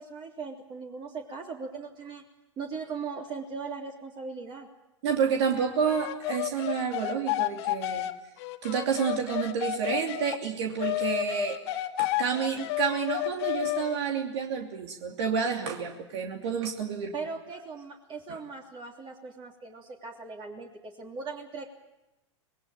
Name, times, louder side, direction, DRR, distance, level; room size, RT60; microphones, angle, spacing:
voice 1, 0.0-2.2 2.6-4.7 17.1-21.7, right 5 dB, 30° right, 1 dB, 3.2 m, -39 dB
voice 2, 5.0-8.1 8.6-11.6 12.0-17.1, right 6 dB, 65° right, 2 dB, 2.9 m, -29 dB
sound 1, 5.9-10.4 10.8-14.0, left 16 dB, 60° left, 1.5 m, -31 dB
25.0 x 20.5 x 8.9 m, 0.97 s
hypercardioid pair, 105°, 16 cm